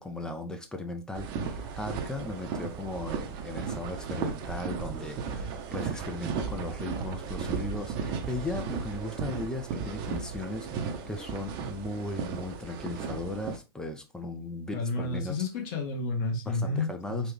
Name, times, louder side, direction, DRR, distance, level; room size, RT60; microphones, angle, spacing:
voice 1, 0.0-15.4 16.5-17.3, left 2 dB, 5° left, 0.3 m, -37 dB
sound 1, 1.1-13.6, right 5 dB, 35° right, 0.6 m, -35 dB
voice 2, 14.7-17.3, left 3 dB, 45° left, 1.1 m, -31 dB
3.4 x 2.3 x 3.1 m
hypercardioid pair, 120°, 13 cm